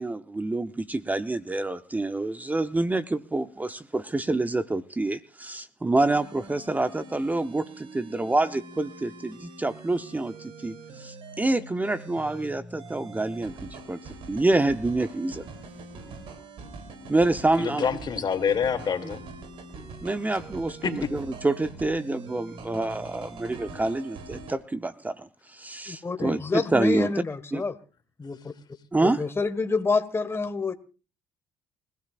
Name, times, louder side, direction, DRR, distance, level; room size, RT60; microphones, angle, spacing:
voice 1, 0.0-14.0 14.3-15.4 17.1-17.9 20.0-27.1 27.5-27.6 28.9-29.2, right 2 dB, 15° right, 10 dB, 0.8 m, -27 dB
sound 1, 5.9-24.6, right 3 dB, 65° right, 3.4 m, -43 dB
voice 2, 17.6-19.2 20.8-21.1 26.2-26.4, left 7 dB, 45° left, 7 dB, 2.7 m, -27 dB
voice 3, 25.9-27.8 28.2-28.5 29.0-30.7, left 4 dB, 25° left, 9 dB, 1.7 m, -28 dB
28.5 x 16.0 x 2.5 m, 0.35 s
supercardioid pair, 65°, 10 cm